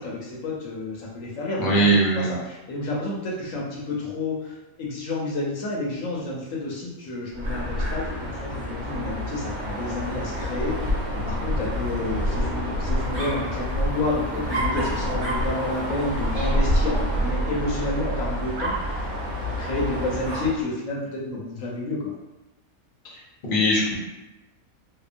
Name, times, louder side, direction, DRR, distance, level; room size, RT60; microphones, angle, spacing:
voice 1, 0.0-1.8 2.2-19.2 19.4-22.1, left 2 dB, 70° left, -4 dB, 0.9 m, -30 dB
voice 2, 1.6-2.3 23.1-24.0, right 1 dB, 50° left, -4 dB, 0.6 m, -21 dB
Dog, 7.3-20.6, equal, 45° right, 0.7 m, -27 dB
2.8 x 2.1 x 2.4 m, 0.98 s
omnidirectional pair, 1.5 m